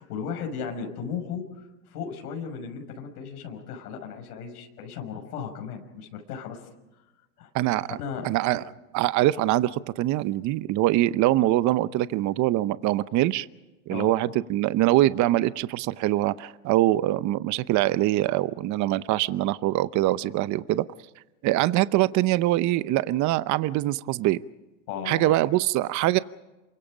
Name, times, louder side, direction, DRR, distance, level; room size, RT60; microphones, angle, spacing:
voice 1, 0.0-1.4 1.9-6.6 7.4-7.5 8.0-8.3 13.9-14.1 24.9-25.4, left 6 dB, 80° left, 2 dB, 6.0 m, -35 dB
voice 2, 7.5-8.0 8.2-8.6 8.9-13.5 13.9-20.9 21.4-24.4 25.1-26.2, right 15 dB, 40° right, 15 dB, 0.8 m, -23 dB
28.0 x 24.5 x 5.1 m, 1.0 s
supercardioid pair, 115°, 44 cm